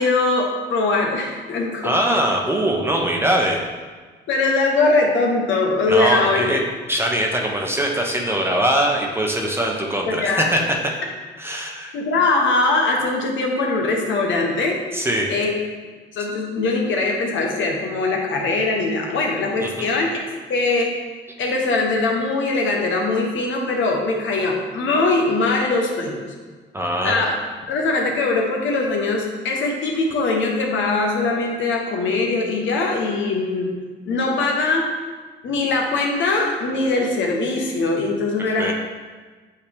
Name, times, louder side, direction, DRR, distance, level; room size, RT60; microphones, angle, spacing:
voice 1, 0.0-1.9 4.3-6.6 10.1-10.5 11.9-14.8 15.3-15.5 16.1-20.2 20.5-20.9 21.4-26.3 27.0-27.3 27.7-33.8 34.1-34.9 35.4-38.7, left 3 dB, 75° left, 0 dB, 1.1 m, -21 dB
voice 2, 1.8-3.6 5.9-6.6 6.9-10.8 11.4-11.9 14.9-15.3 19.6-19.9 26.7-27.2 38.5-38.7, right 1 dB, 10° right, 0 dB, 1.0 m, -22 dB
8.6 x 3.2 x 3.5 m, 1.4 s
cardioid pair, 90°, 20 cm